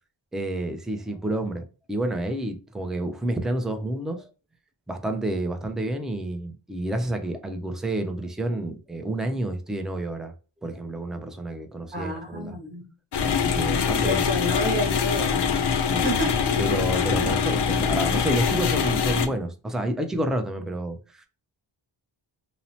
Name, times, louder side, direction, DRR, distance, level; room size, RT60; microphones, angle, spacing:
voice 1, 0.3-4.3 4.9-10.3 10.6-12.6 13.2-14.3 15.8-16.3 16.6-21.3, right 1 dB, ahead, 0.4 m, -29 dB
voice 2, 11.9-12.8 14.0-15.5 16.0-16.5 17.1-17.3, equal, 25° right, 1.1 m, -29 dB
sound 1, 13.1-19.3, left 6 dB, 55° left, 0.5 m, -24 dB
2.9 x 2.0 x 2.6 m
wide cardioid pair, 45°, 50 cm